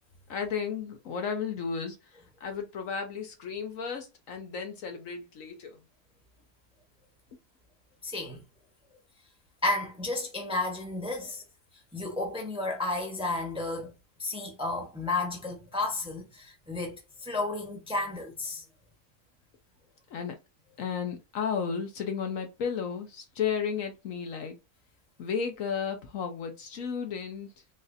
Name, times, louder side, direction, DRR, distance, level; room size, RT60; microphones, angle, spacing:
voice 1, 0.3-2.0 2.4-5.8 20.1-20.3 20.8-24.6 25.2-27.5, left 6 dB, 65° left, 1.1 m, -33 dB
voice 2, 8.0-8.4 9.6-11.4 11.9-13.9 14.2-18.6, left 2 dB, 5° right, 0.8 m, -32 dB
4.0 x 2.5 x 2.6 m
omnidirectional pair, 1.6 m